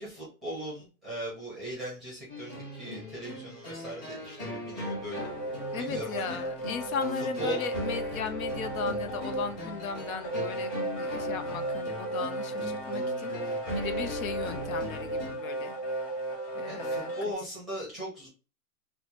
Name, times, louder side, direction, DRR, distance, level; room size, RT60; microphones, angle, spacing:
voice 1, 0.0-5.3 5.7-6.4 7.4-7.6 16.7-18.3, right 1 dB, ahead, -5 dB, 0.7 m, -39 dB
sound 1, 2.3-15.3, left 1 dB, 20° left, 1.4 m, -39 dB
sound 2, 4.7-17.3, right 2 dB, 40° left, 0.9 m, -35 dB
voice 2, 5.7-15.7 16.5-17.1, left 6 dB, 70° left, 8 dB, 0.6 m, -37 dB
4.4 x 2.1 x 2.8 m, 0.35 s
hypercardioid pair, 165°, 43 cm